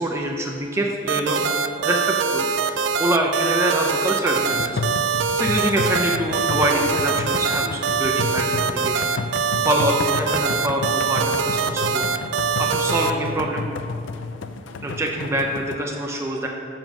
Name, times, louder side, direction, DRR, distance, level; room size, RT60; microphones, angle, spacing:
voice 1, 0.0-4.8 5.3-9.0 9.3-12.3 12.6-13.6 14.8-16.5, right 1 dB, 15° right, 0 dB, 0.5 m, -25 dB
sound 1, 1.1-13.1, right 6 dB, 65° right, 0.4 m, -23 dB
sound 2, 4.5-15.8, left 3 dB, 70° left, 0.4 m, -31 dB
7.2 x 5.3 x 6.0 m, 2.4 s
head